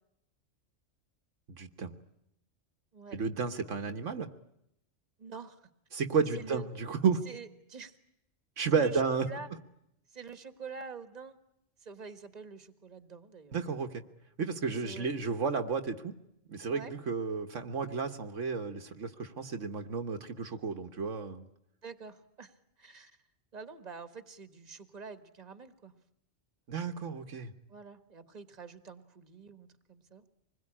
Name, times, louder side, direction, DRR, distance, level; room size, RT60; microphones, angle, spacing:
voice 1, 1.5-1.9 3.1-4.3 5.9-7.2 8.6-9.3 13.5-14.0 14.4-16.1 16.5-21.5 26.7-27.5, right 5 dB, 75° right, 6 dB, 1.6 m, -32 dB
voice 2, 5.2-5.6 6.3-6.7 7.3-7.9 8.7-9.5 10.1-11.4 11.8-13.5 14.6-15.1 16.7-16.9 21.8-22.5 22.8-23.1 23.5-25.9 27.7-30.2, right 5 dB, 35° right, 11 dB, 1.6 m, -46 dB
26.0 x 21.0 x 10.0 m, 0.81 s
omnidirectional pair, 1.3 m